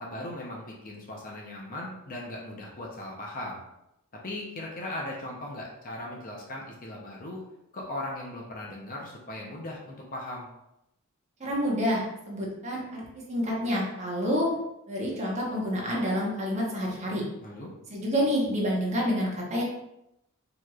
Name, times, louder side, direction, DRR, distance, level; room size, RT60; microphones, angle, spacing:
voice 1, 0.0-3.6 4.2-7.4 7.7-10.5 17.4-17.7, left 1 dB, 40° left, -2 dB, 0.7 m, -38 dB
voice 2, 11.4-14.5 14.9-17.2 17.9-19.6, equal, 35° right, -3 dB, 1.0 m, -28 dB
4.6 x 3.0 x 2.4 m, 0.85 s
head